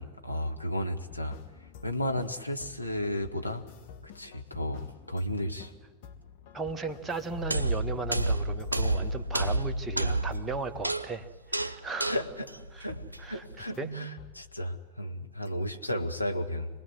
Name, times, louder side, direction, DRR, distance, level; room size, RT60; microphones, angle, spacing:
voice 1, 0.0-1.4 1.8-3.6 4.1-5.7 12.0-12.2 12.8-13.0 13.3-16.7, equal, 90° left, 3 dB, 1.6 m, -33 dB
sound 1, 0.9-10.0 10.3-10.4 10.7-11.3 11.6-11.7 12.0-12.1 12.5-12.6 12.9-13.4 13.7-13.9 14.2-14.7 15.0-15.1 15.5-15.6, left 7 dB, 50° left, 2.4 m, -50 dB
voice 2, 6.5-12.2 12.7-12.9 13.2-13.4 13.8-13.9, right 3 dB, 15° right, 6 dB, 1.6 m, -36 dB
sound 2, 7.4-13.6, right 2 dB, 85° right, 0.8 m, -30 dB
26.5 x 19.5 x 8.0 m, 1.3 s
figure-of-eight pair, 90°, 0 cm